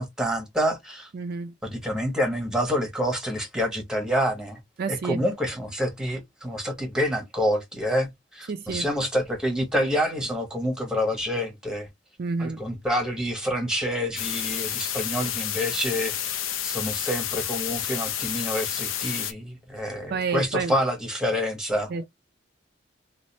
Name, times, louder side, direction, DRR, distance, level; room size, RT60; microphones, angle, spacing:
voice 1, 0.0-1.1 1.6-4.6 4.9-11.9 12.4-21.9, equal, 5° right, 1.1 m, -27 dB
voice 2, 1.1-1.5 4.8-5.2 8.5-8.9 12.2-12.6 20.1-20.7 21.9-22.0, right 4 dB, 50° right, 0.4 m, -29 dB
sound 1, 14.2-19.3, left 10 dB, 90° left, 0.7 m, -30 dB
3.1 x 2.5 x 4.0 m
head